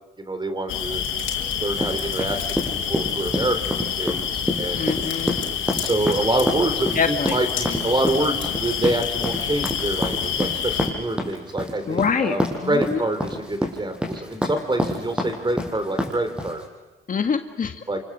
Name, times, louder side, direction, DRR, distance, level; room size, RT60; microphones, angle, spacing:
voice 1, 0.2-1.0 1.6-2.4 2.7-4.8 5.8-16.6 17.9-18.0, right 2 dB, 25° right, 8 dB, 4.4 m, -26 dB
sound 1, 0.7-10.9, left 8 dB, 90° left, 4.9 m, -27 dB
sound 2, 1.8-16.6, equal, 5° right, 6.1 m, -27 dB
voice 2, 4.8-5.4 7.0-7.4 11.9-12.4 12.6-13.0 17.1-17.8, left 6 dB, 40° left, 7 dB, 1.7 m, -24 dB
28.5 x 25.5 x 7.5 m, 1.2 s
cardioid pair, 90°, 20 cm